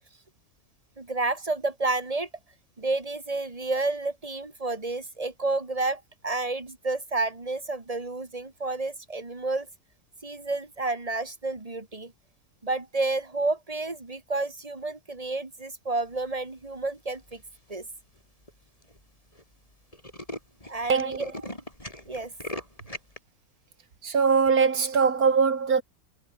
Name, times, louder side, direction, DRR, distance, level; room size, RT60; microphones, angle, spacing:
voice 1, 1.0-2.3 2.8-9.7 10.2-12.1 12.6-17.4 17.7-17.9 20.7-21.3 22.1-22.3, right 2 dB, 25° right, 2.4 m, -30 dB
Tools, 17.1-17.5 18.2-18.3 18.5-18.6 18.8-19.0 19.3-19.4 19.7-23.2, left 1 dB, 25° left, 7.1 m, -39 dB
voice 2, 20.9-21.3 24.0-25.8, right 5 dB, 75° right, 2.5 m, -22 dB
omnidirectional pair, 1.6 m